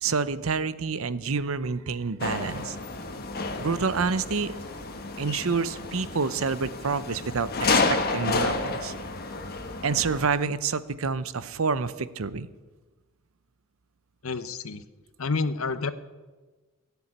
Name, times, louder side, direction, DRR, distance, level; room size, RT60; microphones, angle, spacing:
voice 1, 0.0-2.8 3.6-4.5 5.2-8.9 9.8-12.5, right 5 dB, 70° right, 15 dB, 0.7 m, -28 dB
sound 1, 2.2-10.3, left 3 dB, 45° left, 1.4 m, -30 dB
voice 2, 14.2-14.8 15.2-15.9, left 4 dB, 75° left, 12 dB, 0.9 m, -29 dB
18.0 x 7.1 x 9.9 m, 1.3 s
head